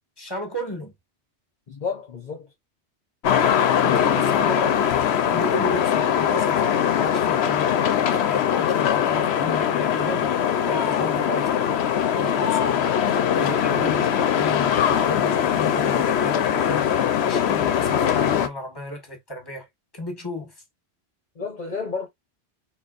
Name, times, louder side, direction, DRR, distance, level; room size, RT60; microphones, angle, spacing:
voice 1, 0.2-0.9 3.4-4.9 5.3-6.6 7.0-10.3 10.7-11.5 12.1-13.0 13.3-19.7 19.9-20.5, left 1 dB, 20° left, 1.7 m, -34 dB
voice 2, 1.7-2.5 11.3-11.5 21.4-22.1, left 5 dB, 45° left, 1.1 m, -31 dB
sound 1, 3.2-18.5, left 9 dB, 75° left, 1.0 m, -21 dB
4.3 x 3.8 x 2.5 m
omnidirectional pair, 1.1 m